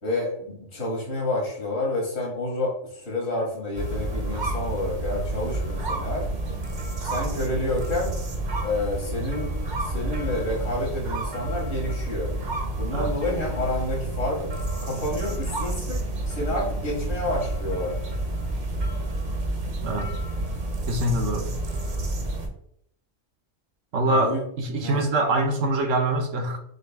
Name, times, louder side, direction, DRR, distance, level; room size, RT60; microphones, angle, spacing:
voice 1, 0.0-6.3 7.0-8.1 8.6-12.3 12.8-14.5 14.8-17.9 24.1-24.4 24.8-25.0, left 1 dB, 55° left, -3 dB, 2.0 m, -29 dB
sound 1, 3.8-22.5, right 2 dB, 40° right, 0.8 m, -29 dB
voice 2, 19.8-20.1 20.9-21.5 23.9-26.6, right 2 dB, 70° right, 5 dB, 1.1 m, -24 dB
6.4 x 2.4 x 3.4 m, 0.70 s
omnidirectional pair, 1.4 m